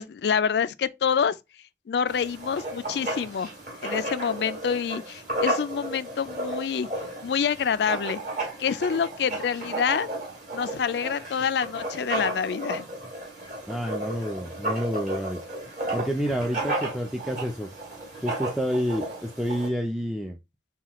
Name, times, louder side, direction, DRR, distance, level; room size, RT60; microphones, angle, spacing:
voice 1, 0.0-1.4 1.9-3.5 3.8-6.9 7.2-8.2 8.6-10.1 10.5-12.9, left 7 dB, 70° left, 0.4 m, -27 dB
Writing, 2.1-19.7, right 1 dB, 50° right, 2.3 m, -33 dB
voice 2, 13.7-15.4 15.9-17.7 18.2-20.4, equal, ahead, 0.4 m, -29 dB
5.7 x 2.3 x 2.9 m
head